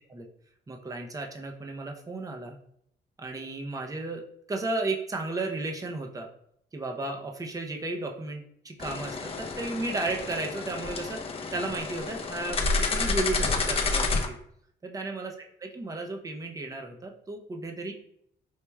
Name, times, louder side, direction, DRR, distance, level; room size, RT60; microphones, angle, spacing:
voice 1, 0.7-2.6 3.2-4.2 4.5-6.3 6.7-11.2 11.5-14.4 14.8-17.9, right 2 dB, 15° right, 2 dB, 0.6 m, -34 dB
sound 1, 8.8-14.3, left 3 dB, 30° left, 0.5 m, -29 dB
4.6 x 2.9 x 2.2 m, 0.69 s
cardioid pair, 90°, 20 cm